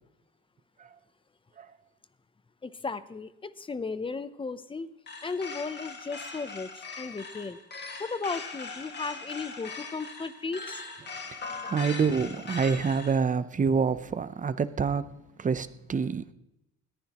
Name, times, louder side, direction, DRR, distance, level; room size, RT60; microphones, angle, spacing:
voice 1, 2.6-4.9 5.2-7.6 8.0-10.8, left 4 dB, 15° left, 14 dB, 0.6 m, -35 dB
sound 1, 5.1-13.2, left 4 dB, 35° left, 1.9 m, -40 dB
voice 2, 11.7-15.1 15.4-16.3, right 5 dB, 25° right, 13 dB, 0.7 m, -27 dB
20.5 x 14.5 x 3.0 m, 0.90 s
cardioid pair, 130°, 30 cm